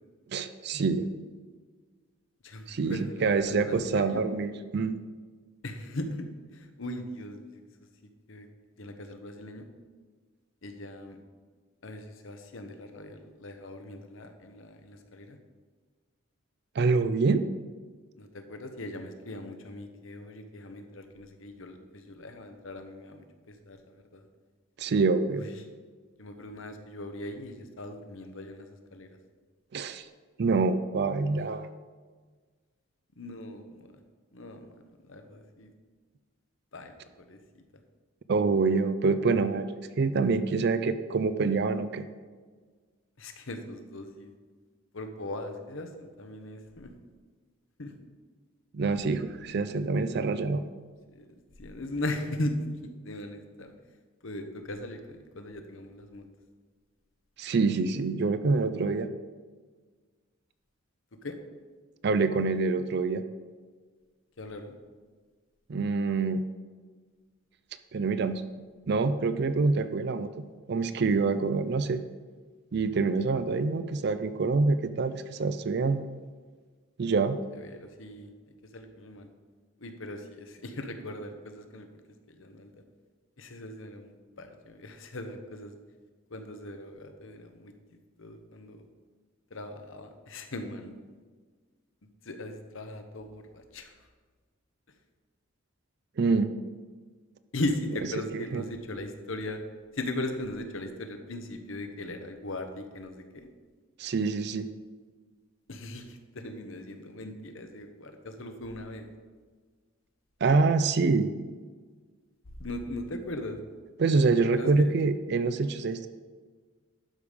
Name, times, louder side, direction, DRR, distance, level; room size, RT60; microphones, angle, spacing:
voice 1, 0.3-1.1 2.7-5.0 16.8-17.4 24.8-25.5 29.7-30.0 30.4-31.7 38.3-39.7 40.0-42.0 48.7-50.6 57.4-59.1 62.0-63.2 65.7-66.4 67.9-68.4 68.9-70.3 70.7-72.0 72.7-76.0 77.0-77.4 96.2-96.5 98.3-98.6 104.0-104.7 110.4-111.3 114.0-116.1, right 4 dB, 50° right, 11 dB, 0.4 m, -26 dB
voice 2, 2.4-4.2 5.6-7.6 8.3-8.5 8.8-9.6 10.6-11.2 11.8-15.4 18.2-24.2 25.3-25.5 26.2-29.1 33.2-33.9 34.3-34.7 35.1-35.7 36.7-37.4 43.2-44.3 44.9-46.9 47.8-47.9 51.1-51.3 51.6-53.7 54.2-56.3 61.2-61.4 64.4-64.7 77.5-78.3 78.7-79.3 79.8-81.9 82.3-82.7 83.4-85.7 86.3-87.7 88.2-88.8 89.5-90.9 92.2-93.9 97.5-99.6 99.9-103.5 105.7-109.1 112.6-113.6 114.5-114.9, left 1 dB, 65° left, 6 dB, 1.0 m, -39 dB
11.5 x 5.0 x 5.3 m, 1.5 s
head